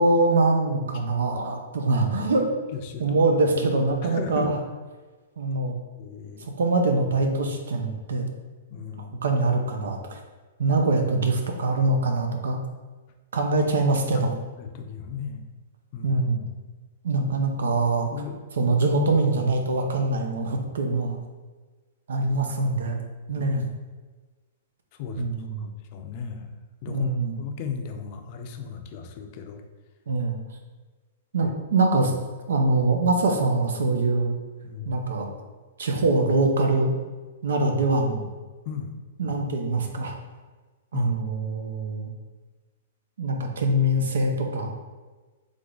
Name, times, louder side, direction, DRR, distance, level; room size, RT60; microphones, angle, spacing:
voice 1, 0.0-2.5 3.0-4.5 5.4-5.8 6.6-8.3 9.2-10.2 10.6-12.6 13.3-14.3 16.0-16.4 17.0-18.1 18.6-21.2 22.1-23.0 23.3-23.6 25.2-25.7 26.9-27.4 30.1-30.4 31.3-32.1 32.5-34.4 34.9-35.3 35.8-36.9 37.4-38.3 39.2-40.2 40.9-42.1 43.2-44.7, right 2 dB, 85° right, 4 dB, 0.7 m, -23 dB
voice 2, 2.7-3.1 4.0-4.5 6.0-6.5 8.7-9.2 14.1-14.3 14.6-15.4 15.9-16.2 18.1-18.8 23.3-23.5 25.0-25.3 25.6-26.5 26.8-27.1 27.4-29.6 31.4-31.5 34.6-35.1 38.7-38.9 40.9-41.1, left 6 dB, 40° left, 6 dB, 0.5 m, -36 dB
3.6 x 3.4 x 3.8 m, 1.3 s
hypercardioid pair, 155°, 0 cm